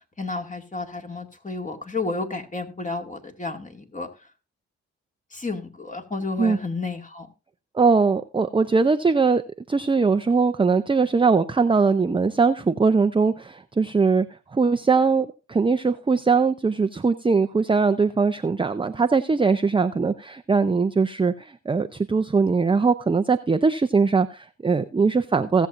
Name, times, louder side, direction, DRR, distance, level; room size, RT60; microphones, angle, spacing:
voice 1, 0.2-4.1 5.3-7.3, left 3 dB, 25° left, 3 dB, 2.2 m, -31 dB
voice 2, 7.7-9.4 9.7-14.3 14.5-25.7, right 4 dB, 15° right, 9 dB, 0.6 m, -21 dB
17.5 x 7.2 x 2.6 m, 0.30 s
supercardioid pair, 50°, 31 cm